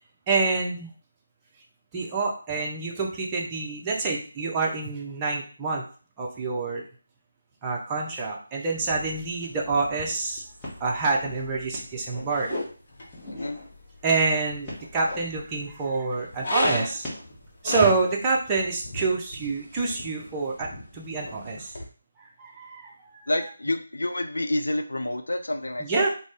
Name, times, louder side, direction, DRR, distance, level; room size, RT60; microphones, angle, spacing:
voice 1, 0.3-0.9 1.9-5.8 6.2-6.8 7.6-10.4 10.8-12.5 14.0-17.1 17.6-21.7 22.4-23.3 25.8-26.1, right 3 dB, 15° right, -2 dB, 0.5 m, -27 dB
sound 1, 8.8-21.8, left 1 dB, 45° left, 0.8 m, -38 dB
sound 2, 9.6-9.7 10.0-10.3 10.6-10.8 11.2-11.4 11.7-12.6 13.1-13.7 14.2-15.2 15.6-15.9 16.2-17.3 17.9-18.1, left 1 dB, 5° left, 1.0 m, -38 dB
voice 2, 23.3-26.1, left 1 dB, 70° left, 6 dB, 0.4 m, -28 dB
2.5 x 2.0 x 3.4 m, 0.40 s
figure-of-eight pair, 155°, 0 cm